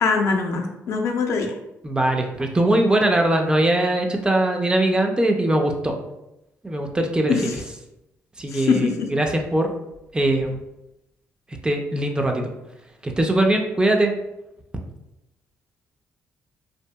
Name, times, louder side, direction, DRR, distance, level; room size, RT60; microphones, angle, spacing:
voice 1, 0.0-1.5 7.3-7.5 8.5-8.9, left 5 dB, 65° left, 3 dB, 0.5 m, -22 dB
voice 2, 1.8-5.9 6.6-7.5 8.4-9.7 10.1-10.6 11.6-12.5 13.0-14.1, right 1 dB, 15° right, 3 dB, 0.4 m, -21 dB
2.7 x 2.5 x 2.2 m, 0.89 s
cardioid pair, 90°, 5 cm